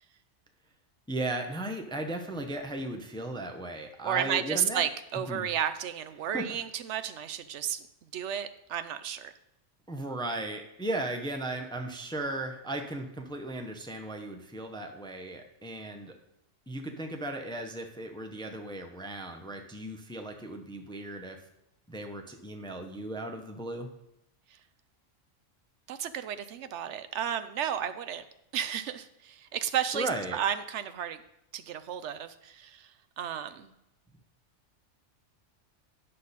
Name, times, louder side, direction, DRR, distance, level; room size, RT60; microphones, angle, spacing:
voice 1, 1.1-4.8 5.3-5.5 6.3-6.6 9.9-16.1 16.7-21.4 21.9-23.9 29.9-30.4, right 1 dB, 5° left, 5 dB, 0.6 m, -36 dB
voice 2, 4.0-7.8 8.1-9.3 25.9-28.2 28.5-31.2 31.5-33.7, right 9 dB, 75° right, 11 dB, 0.9 m, -33 dB
10.0 x 6.6 x 4.1 m, 0.82 s
omnidirectional pair, 1.3 m